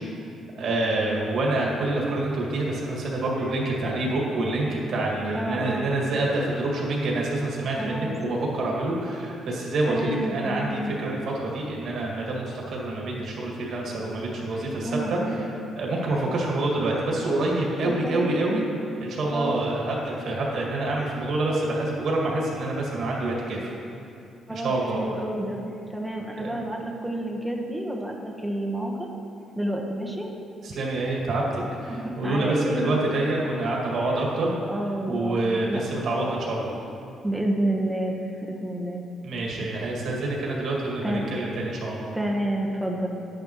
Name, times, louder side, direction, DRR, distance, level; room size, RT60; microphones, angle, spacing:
voice 1, 0.6-15.2 15.8-18.6 19.0-23.7 24.5-25.0 26.4-26.6 30.6-34.5 35.1-36.7 39.2-42.1, right 2 dB, 65° right, -3 dB, 2.1 m, -27 dB
voice 2, 5.4-5.9 7.8-8.1 9.9-11.0 14.5-15.4 16.1-16.2 17.8-18.4 19.3-19.6 24.5-25.6 25.9-29.1 29.6-30.3 31.9-33.0 34.1-34.2 34.7-35.8 37.2-38.2 38.5-39.0 41.0-41.3 42.1-43.1, right 1 dB, 5° right, 0 dB, 1.2 m, -29 dB
11.0 x 9.3 x 3.1 m, 2.6 s
cardioid pair, 90°, 0 cm